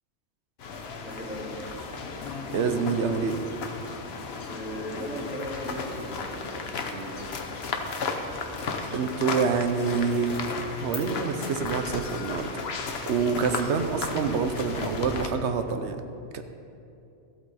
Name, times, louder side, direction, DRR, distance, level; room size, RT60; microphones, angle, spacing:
sound 1, 0.6-15.3, left 4 dB, 65° left, 1.1 m, -34 dB
sound 2, 0.9-11.0, left 1 dB, 35° left, 2.9 m, -55 dB
voice 1, 1.0-1.8 4.5-7.5, equal, 5° right, -12 dB, 2.3 m, -38 dB
voice 2, 2.5-3.4 8.9-10.4 10.8-12.5 13.1-16.0 16.3-16.4, right 5 dB, 90° right, 8 dB, 1.0 m, -26 dB
14.0 x 8.2 x 4.2 m, 2.7 s
omnidirectional pair, 1.1 m